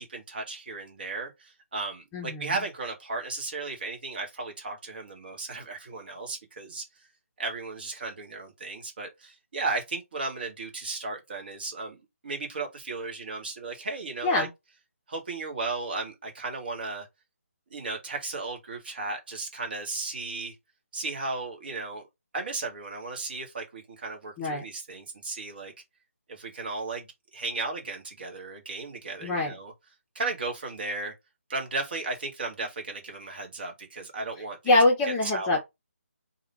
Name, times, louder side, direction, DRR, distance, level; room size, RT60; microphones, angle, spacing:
voice 1, 0.0-6.8 7.4-14.5 15.1-17.1 17.7-20.6 20.9-22.0 22.3-25.7 26.3-27.1 27.3-29.7 30.2-31.1 31.5-34.6 35.2-35.6, right 3 dB, 40° right, 1.8 m, -35 dB
voice 2, 2.1-2.5 14.2-14.5 24.4-24.6 29.2-29.5 34.7-35.6, left 2 dB, 15° left, 0.9 m, -24 dB
3.6 x 2.9 x 4.4 m
figure-of-eight pair, 150°, 8 cm